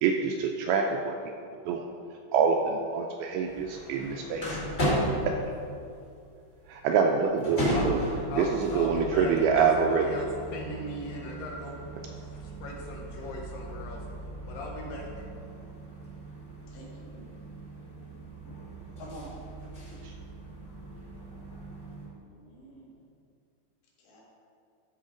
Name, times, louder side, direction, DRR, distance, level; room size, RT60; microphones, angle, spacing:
voice 1, 0.0-1.2 1.7-1.9 2.3-4.6 5.3-5.4 6.7-8.0 8.4-10.2 20.0-20.1, right 6 dB, 85° right, 3 dB, 2.2 m, -26 dB
sound 1, 3.4-22.1, equal, 25° left, 1.4 m, -36 dB
voice 2, 8.3-11.8 12.4-14.0 14.5-15.2, left 2 dB, 70° left, 0 dB, 2.4 m, -38 dB
voice 3, 16.7-17.2 19.0-19.3 22.2-23.0 24.0-24.2, equal, 90° left, -5 dB, 4.2 m, -48 dB
13.0 x 4.5 x 5.0 m, 2.4 s
omnidirectional pair, 4.8 m